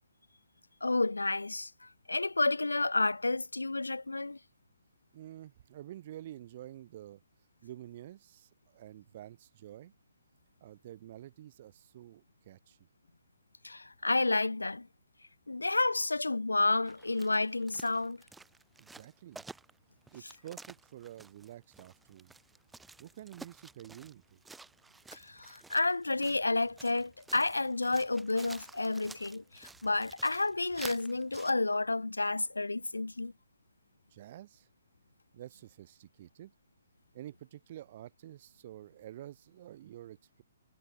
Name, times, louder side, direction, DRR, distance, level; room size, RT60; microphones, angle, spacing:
voice 1, 0.8-4.4 13.6-14.9 15.5-18.2 25.1-33.3, left 2 dB, 80° left, 1.0 m, -30 dB
voice 2, 5.1-7.2 7.6-9.9 10.6-12.8 18.8-19.4 20.1-22.3 23.0-24.4 34.1-34.7 35.3-36.5 37.1-40.4, right 13 dB, 40° right, 1.9 m, -49 dB
sound 1, 16.9-31.5, right 3 dB, 5° right, 1.9 m, -52 dB
figure-of-eight pair, 125°, 0 cm